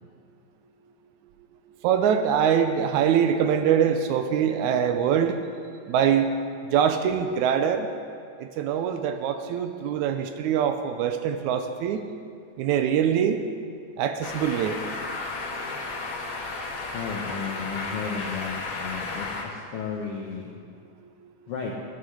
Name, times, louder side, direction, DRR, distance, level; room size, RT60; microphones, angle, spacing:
voice 1, 1.8-5.4 5.9-6.3 6.7-7.9 8.4-12.0 12.6-13.4 14.0-14.8, right 8 dB, 85° right, 7 dB, 1.7 m, -23 dB
sound 1, 14.2-19.4, left 3 dB, 55° left, 2.3 m, -33 dB
voice 2, 16.9-20.5 21.5-21.7, left 6 dB, 85° left, -1 dB, 1.3 m, -33 dB
12.0 x 11.5 x 6.3 m, 2.5 s
omnidirectional pair, 4.2 m